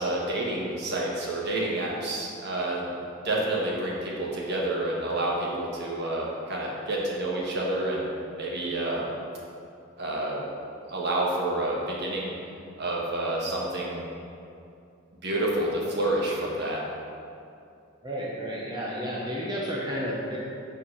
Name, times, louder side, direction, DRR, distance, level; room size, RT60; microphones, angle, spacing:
voice 1, 0.0-2.8 3.2-8.1 8.4-9.1 10.0-10.4 10.9-12.3 12.8-14.1 15.2-16.8, right 1 dB, 55° right, -3 dB, 1.4 m, -29 dB
voice 2, 18.0-20.4, equal, 20° right, -5 dB, 0.8 m, -31 dB
7.1 x 4.5 x 5.6 m, 2.5 s
head